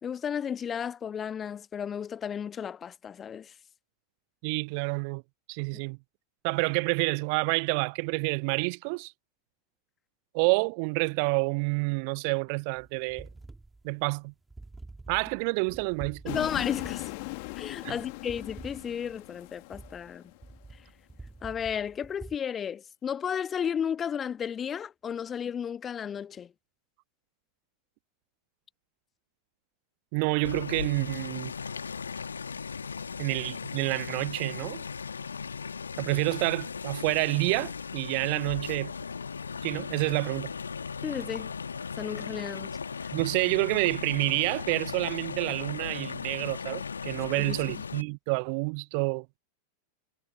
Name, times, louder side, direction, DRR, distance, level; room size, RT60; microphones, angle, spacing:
voice 1, 0.0-3.5 16.3-17.1 17.6-20.3 21.4-26.5 41.0-41.5 42.0-43.1, left 8 dB, 25° left, 1.6 m, -33 dB
voice 2, 4.4-5.2 5.5-6.0 6.4-9.1 10.3-13.3 13.8-14.3 15.1-16.4 17.8-18.0 30.1-31.5 33.2-34.8 36.0-38.9 39.6-40.5 43.1-49.3, right 35 dB, 45° right, 0.7 m, -28 dB
sound 1, 12.8-22.4, right 3 dB, 10° right, 3.2 m, -47 dB
sound 2, 16.2-20.5, left 29 dB, 45° left, 2.1 m, -39 dB
sound 3, 30.4-48.0, left 5 dB, 75° left, 1.9 m, -37 dB
figure-of-eight pair, 90°, 0 cm